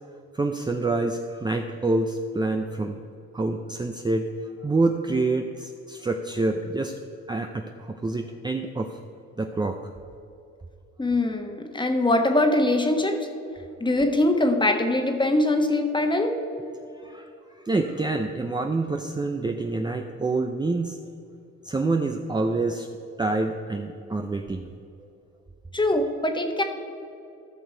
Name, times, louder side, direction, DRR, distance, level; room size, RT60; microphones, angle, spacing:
voice 1, 0.3-3.0 3.3-4.3 4.6-7.0 7.3-8.9 9.4-9.8 17.0-17.3 17.6-21.0 21.6-22.9 23.2-24.7, right 2 dB, 15° right, 4 dB, 0.6 m, -27 dB
voice 2, 11.0-13.2 13.8-16.3 25.7-26.6, left 1 dB, 15° left, 4 dB, 1.3 m, -22 dB
14.5 x 6.4 x 4.5 m, 2.6 s
cardioid pair, 90°, 30 cm